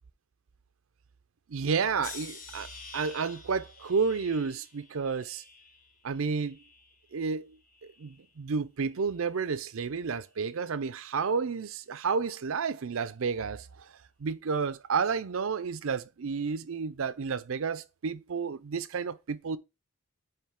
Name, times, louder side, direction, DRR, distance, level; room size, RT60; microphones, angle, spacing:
voice 1, 1.5-5.4 6.0-6.6 7.1-13.9 14.2-19.6, right 5 dB, 70° right, 0.5 m, -31 dB
sound 1, 2.0-7.2 7.6-8.3 9.0-9.3, left 5 dB, 40° left, 1.1 m, -49 dB
8.9 x 3.2 x 3.6 m
head